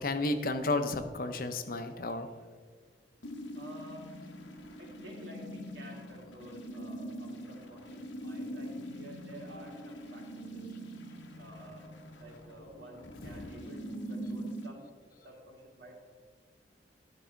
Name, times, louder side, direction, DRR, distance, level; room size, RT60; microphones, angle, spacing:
voice 1, 0.0-2.3 13.2-13.5, left 2 dB, 50° left, 8 dB, 0.7 m, -32 dB
sound 1, 3.2-14.7, equal, 85° left, 1.0 m, -43 dB
voice 2, 3.5-4.1 4.8-10.7 11.4-16.0, right 1 dB, 80° right, -1 dB, 2.3 m, -51 dB
12.5 x 4.8 x 4.5 m, 1.5 s
head